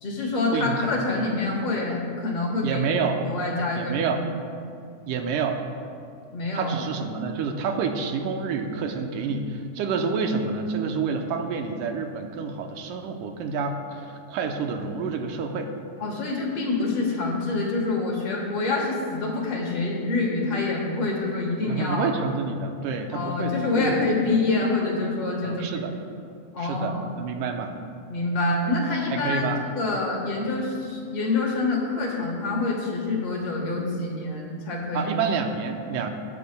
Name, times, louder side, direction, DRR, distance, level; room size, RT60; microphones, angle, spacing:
voice 1, 0.0-2.9 3.2-4.1 6.3-6.7 16.0-22.1 23.1-25.7 26.5-27.1 28.1-29.4 29.7-35.1, left 3 dB, 55° left, -2 dB, 2.1 m, -26 dB
voice 2, 0.5-0.9 2.6-3.2 3.8-4.2 5.1-5.6 6.5-15.7 21.7-24.2 25.4-25.9 26.6-27.7 29.1-29.6 34.9-36.1, right 5 dB, 85° right, 5 dB, 2.2 m, -28 dB
20.5 x 8.5 x 2.2 m, 2.4 s
omnidirectional pair, 3.7 m